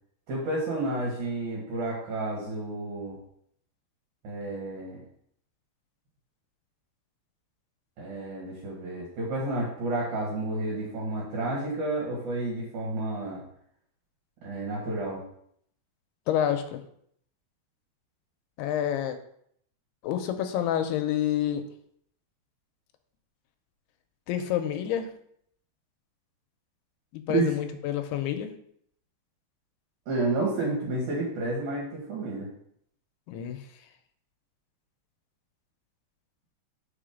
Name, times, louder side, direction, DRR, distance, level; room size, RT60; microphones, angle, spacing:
voice 1, 0.3-3.2 4.2-5.0 8.0-13.4 14.4-15.2 27.3-27.5 30.1-32.5, right 2 dB, 60° right, -3 dB, 2.5 m, -30 dB
voice 2, 16.3-16.8 18.6-19.2 20.0-21.6 24.3-25.1 27.1-28.5 33.3-33.6, left 10 dB, 80° left, 7 dB, 2.5 m, -28 dB
5.2 x 4.9 x 5.0 m, 0.68 s
omnidirectional pair, 4.9 m